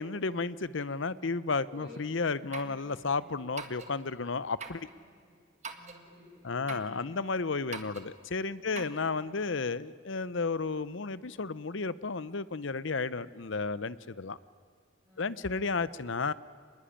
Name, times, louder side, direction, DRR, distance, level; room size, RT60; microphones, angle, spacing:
voice 1, 0.0-4.9 6.4-14.4 15.2-16.3, left 4 dB, 70° left, 16 dB, 0.8 m, -33 dB
voice 2, 1.7-2.0 2.5-3.3 5.0-5.4 5.7-7.3 8.6-9.6 15.0-15.6, left 1 dB, 15° right, -7 dB, 7.4 m, -54 dB
sound 1, 2.5-2.8 3.6-3.9 4.6-4.9 5.6-6.0 6.7-6.9 7.7-8.1 8.7-9.0, right 4 dB, 35° right, 1.7 m, -42 dB
25.5 x 20.5 x 10.0 m, 2.1 s
head